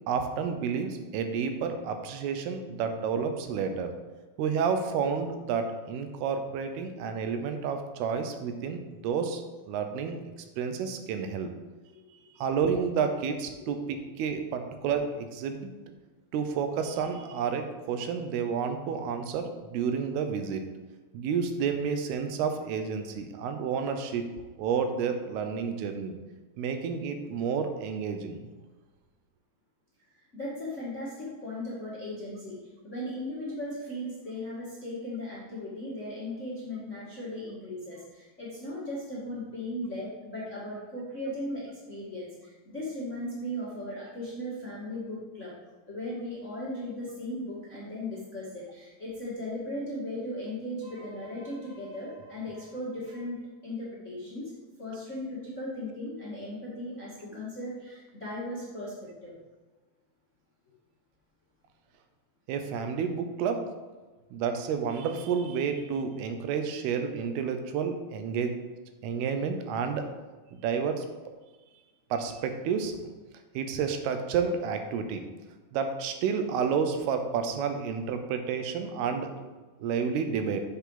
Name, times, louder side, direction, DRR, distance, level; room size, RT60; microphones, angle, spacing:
voice 1, 0.1-3.9 4.4-9.4 9.7-10.2 10.6-11.5 12.4-15.7 16.3-20.6 21.1-24.2 24.6-26.2 26.6-28.4 62.5-63.6 64.3-68.5 69.0-70.1 70.5-71.1 72.1-73.1 73.5-75.2 75.7-79.5 79.8-80.6, right 6 dB, 85° right, 7 dB, 2.8 m, -30 dB
voice 2, 30.1-32.6 32.8-45.5 45.9-54.5 54.8-59.4, left 1 dB, 40° left, -8 dB, 1.0 m, -37 dB
7.5 x 6.8 x 3.9 m, 1.3 s
omnidirectional pair, 4.5 m